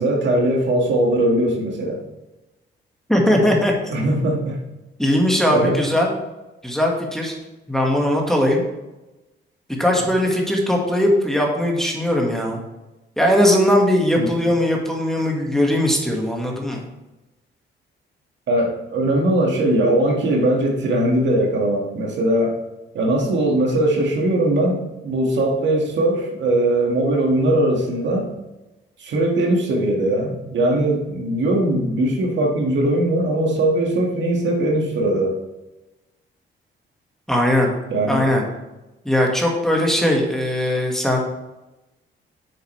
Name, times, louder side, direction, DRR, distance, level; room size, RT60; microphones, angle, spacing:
voice 1, 0.0-2.0 3.9-4.6 5.5-5.8 14.2-14.3 18.5-22.6 22.9-28.3 29.0-35.4 37.9-38.2, right 1 dB, 65° right, 0 dB, 2.0 m, -20 dB
voice 2, 3.1-3.7 5.0-6.1 6.6-7.4 7.7-8.6 9.8-12.6 13.2-16.8 37.3-37.7 38.0-38.5 39.1-41.2, left 1 dB, ahead, -1 dB, 1.9 m, -19 dB
9.2 x 6.9 x 3.3 m, 1.0 s
cardioid pair, 90°, 20 cm